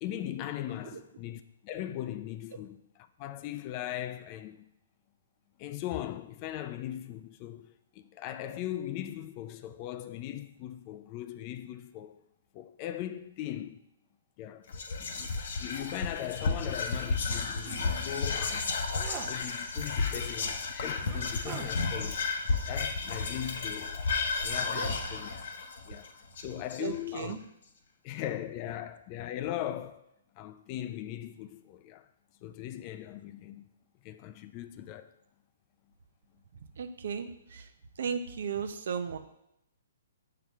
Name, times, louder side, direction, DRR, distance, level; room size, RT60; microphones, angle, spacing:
voice 1, 0.0-4.7 5.6-12.2 12.5-13.8 14.4-14.7 15.0-18.8 19.3-22.2 22.7-24.0 24.4-25.3 25.9-27.4 28.0-30.1 30.3-32.1 32.4-33.7 34.0-35.1, left 12 dB, 35° left, 0.5 m, -39 dB
Whispering, 14.7-27.2, left 4 dB, 60° left, 1.0 m, -32 dB
sound 1, 16.8-16.9 17.3-17.4 17.6-17.9 18.3-18.5 19.0-19.3 20.2-20.3 20.9-21.7 23.1-23.5 23.8-24.0, right 8 dB, 30° right, 0.8 m, -44 dB
voice 2, 26.8-27.4 36.8-37.7 38.0-39.2, right 6 dB, 65° right, 0.6 m, -35 dB
6.7 x 5.8 x 3.5 m
hypercardioid pair, 130°, 0 cm